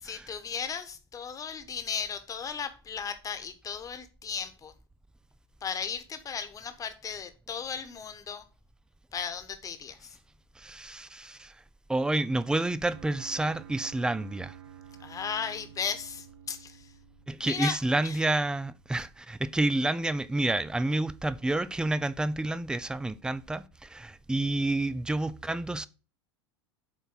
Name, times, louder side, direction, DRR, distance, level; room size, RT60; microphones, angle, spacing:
voice 1, 0.0-4.7 5.6-8.4 9.1-10.2 15.0-16.9 17.4-17.8 18.0-18.2, left 6 dB, 25° left, 1.2 m, -36 dB
voice 2, 10.6-11.5 11.9-14.5 17.3-25.9, right 2 dB, 5° right, 0.5 m, -29 dB
sound 1, 12.9-18.9, right 9 dB, 80° right, 1.1 m, -51 dB
7.5 x 4.0 x 6.1 m
hypercardioid pair, 85°, 14 cm